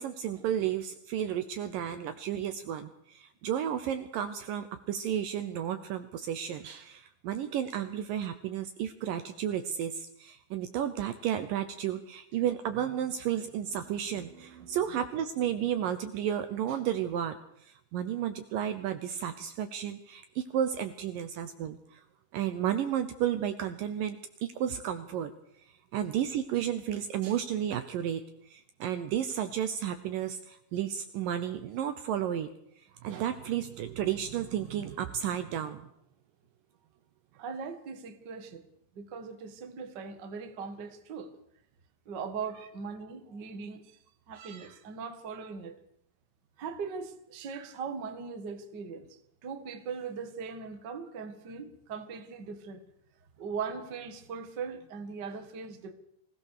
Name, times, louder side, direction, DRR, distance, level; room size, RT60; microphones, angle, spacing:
voice 1, 0.0-22.0 22.3-25.3 25.9-32.5 33.0-35.9 44.4-44.8 47.5-47.7, right 10 dB, 70° right, 2.3 m, -32 dB
voice 2, 37.3-38.6 38.9-41.3 42.1-44.0 44.3-45.8 46.6-52.8 53.4-55.9, right 5 dB, 40° right, 1.6 m, -40 dB
23.5 x 16.5 x 6.7 m
omnidirectional pair, 4.6 m